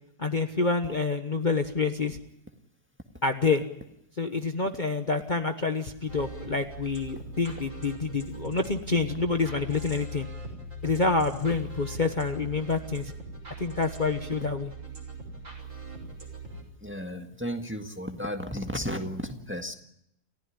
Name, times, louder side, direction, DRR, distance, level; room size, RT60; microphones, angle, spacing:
voice 1, 0.2-2.2 3.2-3.6 4.2-10.3 10.8-13.1 13.6-14.7, left 4 dB, 30° left, 5 dB, 1.3 m, -27 dB
sound 1, 6.1-16.6, right 1 dB, 50° right, 6.2 m, -41 dB
voice 2, 16.8-19.7, equal, 10° right, 5 dB, 1.6 m, -34 dB
29.5 x 15.5 x 10.0 m, 0.79 s
omnidirectional pair, 1.7 m